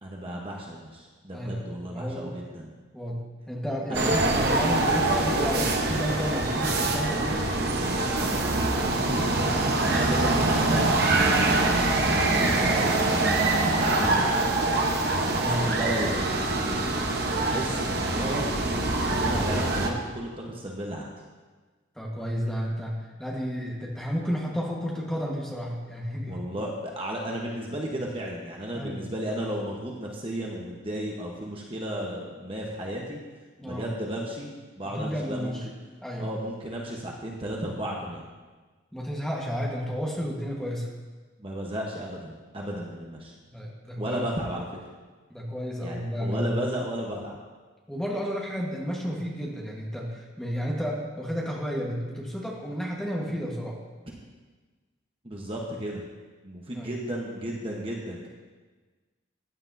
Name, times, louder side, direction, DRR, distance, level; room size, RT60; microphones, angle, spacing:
voice 1, 0.0-2.7 3.9-4.1 5.0-5.1 8.3-8.6 9.1-9.6 9.8-11.4 12.1-13.2 13.7-14.7 15.5-16.8 17.3-21.1 26.3-33.2 33.6-35.7 36.2-38.2 41.4-43.3 44.0-44.7 45.8-47.4 55.2-56.0 56.4-58.3, right 1 dB, 30° right, -2 dB, 1.1 m, -34 dB
voice 2, 1.3-1.6 1.9-2.3 2.9-4.2 4.5-7.5 14.0-14.1 15.4-15.7 21.9-26.4 28.7-29.0 33.6-33.9 34.8-35.6 36.0-36.3 38.9-40.9 43.5-44.3 45.3-46.5 47.9-53.8 56.7-56.9, equal, 5° left, -3 dB, 1.4 m, -32 dB
sound 1, 3.9-19.9, right 2 dB, 50° right, 1.1 m, -24 dB
15.0 x 9.8 x 2.7 m, 1.3 s
head